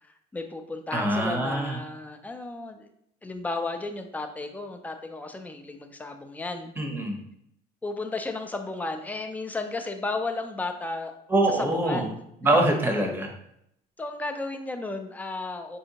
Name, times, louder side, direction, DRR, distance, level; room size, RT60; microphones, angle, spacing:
voice 1, 0.3-2.9 3.2-6.7 7.8-11.1 11.5-12.2 14.0-15.8, left 3 dB, 10° left, 6 dB, 0.4 m, -33 dB
voice 2, 0.9-1.8 6.8-7.2 11.3-12.0 12.4-13.3, right 1 dB, 10° right, 2 dB, 0.8 m, -24 dB
4.2 x 2.7 x 2.8 m, 0.76 s
cardioid pair, 110°, 17 cm